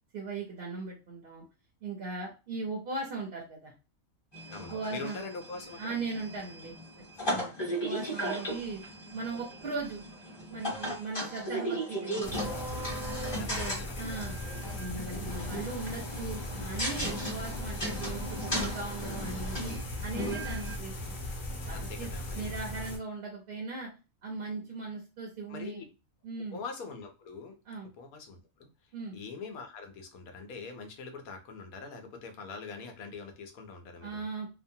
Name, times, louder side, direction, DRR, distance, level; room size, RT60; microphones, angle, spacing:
voice 1, 0.1-1.4 1.8-3.7 4.7-5.2 5.8-6.7 7.3-8.8 9.1-10.0 10.5-12.8 13.4-14.4 14.7-21.2 21.6-23.9 24.2-25.8 26.2-26.6 27.7-27.9 28.9-29.2 34.0-34.5, right 3 dB, 50° right, -2 dB, 0.8 m, -39 dB
sound 1, 4.3-20.8, equal, 20° left, 1.0 m, -37 dB
voice 2, 4.5-6.0 13.4-14.0 21.7-22.5 25.5-25.8 26.5-27.5 28.0-28.7 29.1-34.2, left 4 dB, 85° left, 5 dB, 1.1 m, -43 dB
sound 2, 12.2-23.0, left 1 dB, 65° left, 1.0 m, -38 dB
2.9 x 2.1 x 2.7 m, 0.30 s
omnidirectional pair, 1.5 m